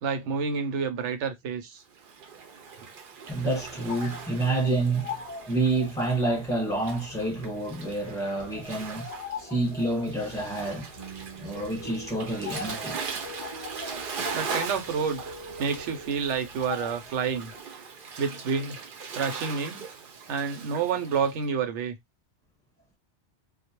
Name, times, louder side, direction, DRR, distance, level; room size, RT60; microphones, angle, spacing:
voice 1, 0.0-1.8 14.3-15.3 15.6-17.5 18.2-18.8 19.1-19.8 20.3-22.0, right 6 dB, 85° right, 0.9 m, -29 dB
Waves surf, 1.9-21.4, right 5 dB, 60° right, 0.6 m, -40 dB
sound 1, 3.3-17.6, left 6 dB, 55° left, 0.4 m, -43 dB
voice 2, 3.3-5.1 5.5-9.1 9.4-10.9 11.4-13.0, right 2 dB, 5° left, 1.0 m, -28 dB
sound 2, 10.9-16.3, right 1 dB, 20° right, 0.6 m, -44 dB
2.3 x 2.0 x 2.8 m
omnidirectional pair, 1.2 m